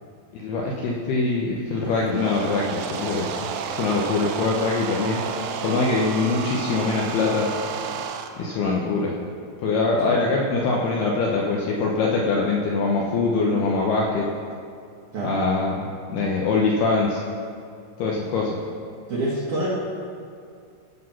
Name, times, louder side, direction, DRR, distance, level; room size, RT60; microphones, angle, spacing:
voice 1, 0.3-5.2 5.6-7.5 8.4-9.1 9.6-14.3 15.2-17.2 18.0-18.6, left 3 dB, 75° left, -2 dB, 2.4 m, -23 dB
sound 1, 1.9-8.3, right 6 dB, 80° right, 3.2 m, -31 dB
voice 2, 19.1-19.7, right 1 dB, 65° right, -7 dB, 2.0 m, -26 dB
17.5 x 5.9 x 5.8 m, 2.3 s
omnidirectional pair, 5.6 m